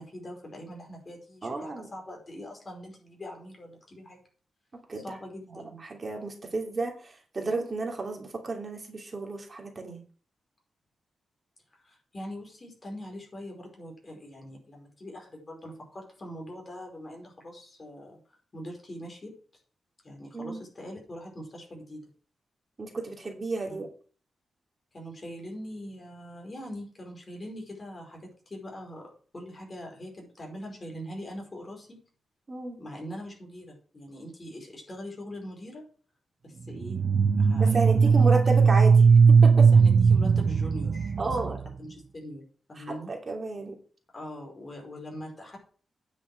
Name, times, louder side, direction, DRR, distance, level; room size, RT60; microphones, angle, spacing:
voice 1, 0.0-4.2 5.0-5.8 11.7-18.2 18.5-19.4 20.0-22.1 23.7-23.9 24.9-32.0 32.8-35.8 36.4-37.0 37.4-38.2 39.7-43.1 44.1-45.6, equal, 35° left, 0 dB, 5.2 m, -42 dB
voice 2, 1.4-1.9 4.9-5.0 5.8-10.0 20.3-20.6 22.8-23.9 32.5-32.8 37.6-39.0 39.3-39.5 41.2-41.6 42.8-43.8, right 3 dB, 35° right, 1 dB, 2.9 m, -32 dB
sound 1, 36.8-41.7, right 5 dB, 55° right, 0.6 m, -19 dB
9.8 x 6.9 x 6.3 m, 0.42 s
wide cardioid pair, 105°, 0 cm